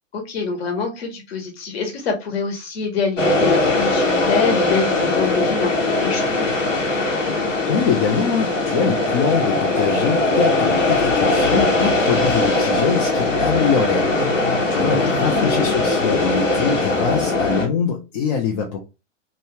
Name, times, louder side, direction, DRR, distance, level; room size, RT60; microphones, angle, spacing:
voice 1, 0.1-6.7 14.8-14.9 15.2-15.6, left 4 dB, 50° left, 1.1 m, -25 dB
sound 1, 3.2-17.7, left 2 dB, 75° left, 1.1 m, -20 dB
voice 2, 7.7-14.1 14.6-18.8, left 6 dB, 30° left, 0.5 m, -23 dB
3.0 x 2.4 x 3.0 m
figure-of-eight pair, 105°, 38 cm